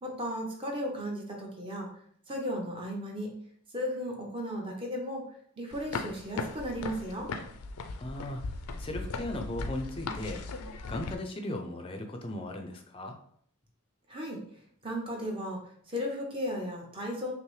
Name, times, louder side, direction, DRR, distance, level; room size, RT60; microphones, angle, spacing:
voice 1, 0.0-1.9 2.3-3.3 3.7-7.3 14.1-14.4 14.8-17.3, equal, 25° right, 0 dB, 0.8 m, -35 dB
sound 1, 5.7-11.1, left 3 dB, 85° left, 0.4 m, -38 dB
voice 2, 8.0-8.5 8.8-10.4 10.9-13.2, left 1 dB, 25° left, 4 dB, 0.5 m, -37 dB
5.6 x 2.0 x 3.2 m, 0.62 s
head